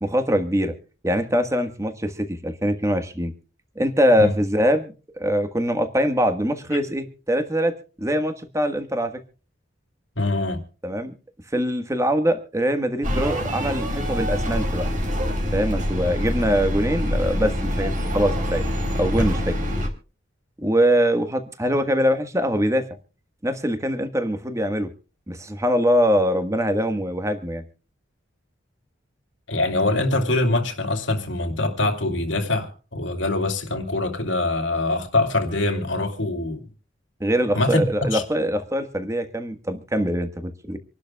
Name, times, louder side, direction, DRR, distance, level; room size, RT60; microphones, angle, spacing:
voice 1, 0.0-0.7 1.0-3.3 3.7-9.1 10.8-11.1 11.5-14.9 15.5-18.6 18.9-19.6 20.6-22.9 23.4-24.9 25.3-27.6 37.2-40.8, equal, 15° right, 1.4 m, -23 dB
voice 2, 10.2-10.6 29.5-36.7 37.5-38.2, left 2 dB, 75° left, 2.7 m, -24 dB
sound 1, 13.0-19.9, equal, 40° right, 3.7 m, -25 dB
27.0 x 12.0 x 2.3 m
head